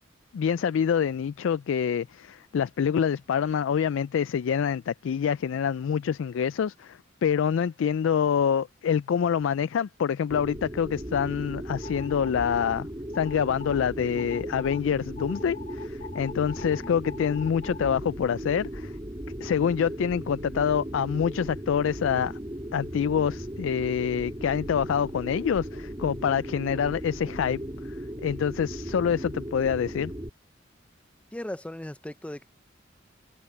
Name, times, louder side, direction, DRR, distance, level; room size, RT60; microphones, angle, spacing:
voice 1, 0.3-12.9 13.1-18.9 19.4-22.4 22.7-27.6 28.2-30.1, left 7 dB, 80° left, 0.3 m, -26 dB
sound 1, 10.3-30.3, equal, 20° right, 2.6 m, -37 dB
sound 2, 11.8-12.8 13.1-13.8 14.2-14.8 15.2-17.9, left 5 dB, 45° left, 5.0 m, -43 dB
voice 2, 31.3-32.5, left 1 dB, 5° left, 0.5 m, -37 dB
head